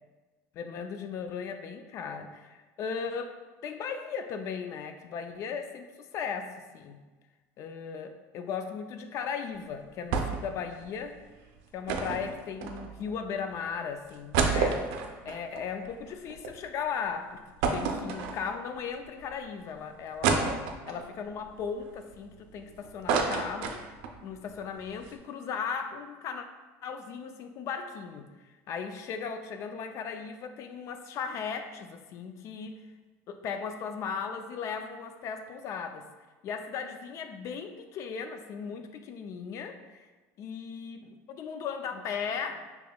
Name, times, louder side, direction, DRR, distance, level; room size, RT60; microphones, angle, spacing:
voice 1, 0.5-3.4 3.6-7.0 7.6-11.2 11.7-14.9 15.2-17.4 17.7-20.6 20.9-23.8 24.2-26.5 26.8-32.8 33.3-36.1 36.4-40.1 40.4-42.7, left 6 dB, 45° left, 7 dB, 0.3 m, -37 dB
sound 1, 10.1-10.5 10.8-10.9 11.9-13.1 13.7-13.8 14.1-16.5 16.9-17.0 17.6-18.7 19.3-19.4 20.2-21.1 21.6-22.6 22.8-24.2 24.5-24.6 24.9-25.1, right 5 dB, 75° right, 0.5 m, -29 dB
5.1 x 2.9 x 2.2 m, 1.3 s
cardioid pair, 130°, 7 cm